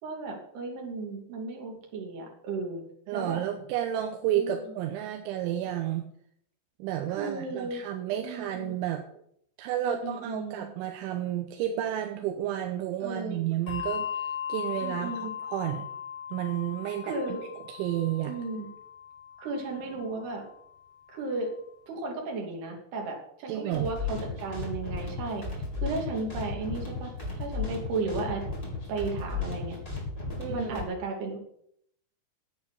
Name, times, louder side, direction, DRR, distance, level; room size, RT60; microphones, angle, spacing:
voice 1, 0.0-2.8 3.1-3.4 4.3-4.6 7.1-7.8 8.2-8.7 9.8-10.7 13.0-13.5 14.8-15.3 17.0-17.5 18.3-18.7 19.4-20.4 21.1-21.5 21.9-25.4 25.8-27.1 27.4-28.4 28.9-29.8 30.3-31.4, right 3 dB, 60° right, 0 dB, 4.7 m, -34 dB
voice 2, 3.1-6.1 6.8-9.0 9.6-15.1 15.4-15.9 16.3-17.4 17.7-18.3 23.5-23.9 30.4-30.9, right 11 dB, 85° right, 5 dB, 3.3 m, -31 dB
Bell, 13.7-20.5, left 8 dB, 35° left, 5.5 m, -38 dB
sound 1, 23.7-30.8, left 4 dB, 10° left, 3.6 m, -35 dB
9.9 x 8.6 x 8.3 m, 0.70 s
omnidirectional pair, 5.5 m